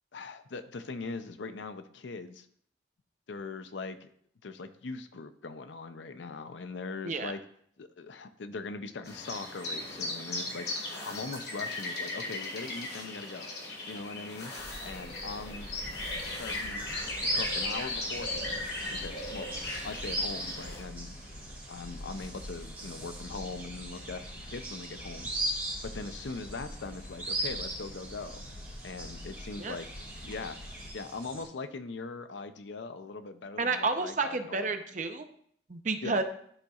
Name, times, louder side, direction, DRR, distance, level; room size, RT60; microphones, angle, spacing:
voice 1, 0.1-2.5 3.3-4.1 4.4-7.4 7.8-13.5 13.9-14.5 14.8-15.7 16.4-16.8 17.2-19.5 19.8-21.2 21.7-25.3 25.8-28.4 28.8-29.9 30.2-30.6 30.9-34.8 36.0-36.2, left 3 dB, 85° left, 10 dB, 0.5 m, -41 dB
sound 1, 9.0-20.8, left 2 dB, 65° left, 1.9 m, -37 dB
sound 2, 14.6-30.9, left 1 dB, 45° left, 0.7 m, -46 dB
sound 3, 16.7-31.4, right 1 dB, 15° right, 2.1 m, -39 dB
voice 2, 33.6-35.3 35.7-36.2, right 4 dB, 45° right, 7 dB, 0.6 m, -30 dB
12.0 x 4.0 x 2.4 m, 0.64 s
head